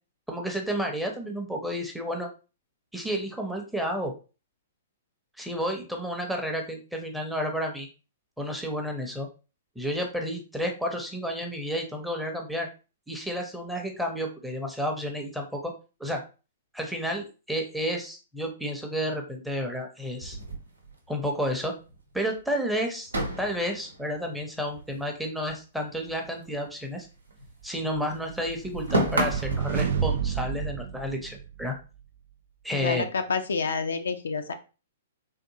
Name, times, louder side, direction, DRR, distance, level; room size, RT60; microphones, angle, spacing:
voice 1, 0.3-2.3 2.9-4.1 5.4-7.9 8.4-9.3 9.8-12.7 13.1-15.7 16.0-16.2 16.7-20.4 21.1-21.7 22.1-23.1 23.4-27.1 27.6-31.7 32.6-33.1, equal, ahead, 2 dB, 0.7 m, -31 dB
sound 1, 20.2-21.5 21.9-22.0 22.3-22.4 23.1-25.6 25.8-27.7 27.9-29.7, right 1 dB, 75° right, 0.8 m, -32 dB
sound 2, 28.0-31.8, right 7 dB, 55° right, 0.3 m, -30 dB
voice 2, 32.7-34.5, left 5 dB, 65° left, 7 dB, 0.4 m, -28 dB
3.6 x 2.5 x 2.7 m, 0.33 s
figure-of-eight pair, 110°, 0 cm